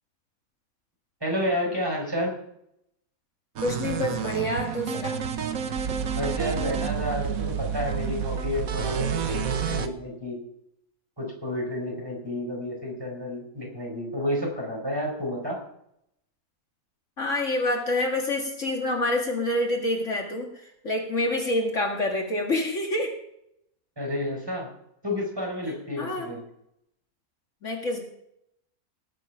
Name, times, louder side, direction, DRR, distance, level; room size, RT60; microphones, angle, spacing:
voice 1, 1.2-2.3 6.1-10.4 11.2-15.6 24.0-24.7 25.0-26.4, left 1 dB, 15° right, -1 dB, 4.4 m, -30 dB
voice 2, 3.6-5.2 17.2-23.1 26.0-26.3 27.6-28.0, left 1 dB, 55° left, 1 dB, 2.2 m, -27 dB
sound 1, 3.6-9.9, right 7 dB, 75° right, 1.4 m, -29 dB
18.5 x 7.9 x 5.6 m, 0.77 s
omnidirectional pair, 1.5 m